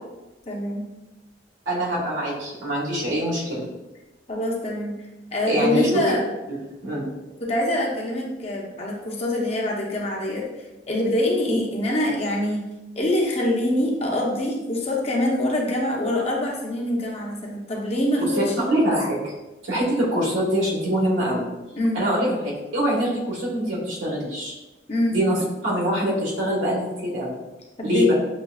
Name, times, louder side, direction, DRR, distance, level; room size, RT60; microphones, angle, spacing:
voice 1, 0.5-0.9 4.3-4.9 5.3-6.2 7.4-10.4 10.9-12.6 13.0-18.7 21.7-22.0 24.9-25.2 27.8-28.1, left 1 dB, 35° left, -2 dB, 0.7 m, -24 dB
voice 2, 1.6-3.6 5.4-5.9 6.8-7.1 18.2-19.3 19.6-21.5 21.9-24.5 25.1-25.4 25.6-27.4 27.8-28.1, equal, 85° right, -5 dB, 1.5 m, -24 dB
6.6 x 2.5 x 2.3 m, 1.0 s
head